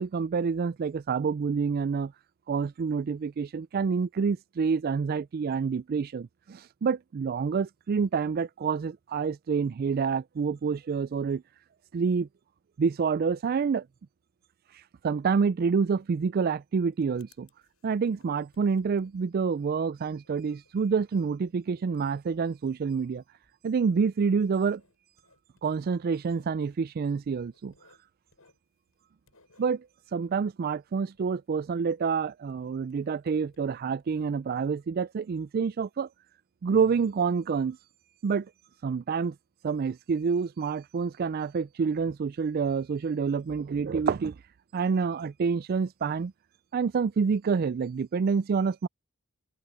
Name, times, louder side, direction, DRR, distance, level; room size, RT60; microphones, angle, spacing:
voice 1, 0.0-2.1 2.5-11.4 11.9-12.3 12.8-13.9 15.0-17.5 17.8-23.2 23.6-24.8 25.6-27.7 29.6-29.9 30.1-36.1 36.6-37.8 38.2-38.5 38.8-39.3 39.6-44.4 44.7-46.3 46.7-48.9, right 5 dB, 45° right, 0.3 m, -27 dB
Writing, 16.6-31.8 32.1-34.7, left 3 dB, 90° left, 7.3 m, -67 dB
head